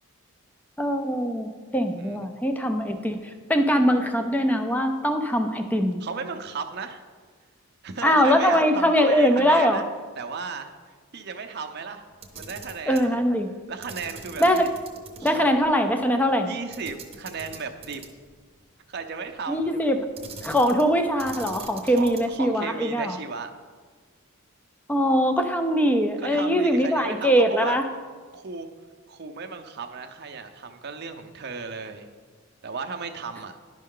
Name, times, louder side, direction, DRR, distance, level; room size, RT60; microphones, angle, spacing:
voice 1, 0.8-6.0 8.0-9.8 12.9-13.5 14.4-14.7 15.2-16.5 19.5-20.1 20.4-23.2 24.9-27.9, equal, 5° left, 7 dB, 0.4 m, -22 dB
voice 2, 6.0-7.0 7.8-9.8 10.2-10.7 11.1-12.0 12.3-13.1 13.7-14.5 15.2-15.6 16.5-18.0 18.9-19.7 21.8-23.5 26.2-27.8 28.3-28.7 29.1-32.1 32.6-33.5, right 5 dB, 45° right, 6 dB, 0.5 m, -35 dB
Camera, 12.1-13.1 13.8-15.3 15.6-15.7 16.7-18.3 20.1-20.9 21.2-22.4, right 5 dB, 25° right, 0.8 m, -42 dB
11.0 x 5.4 x 3.7 m, 1.5 s
head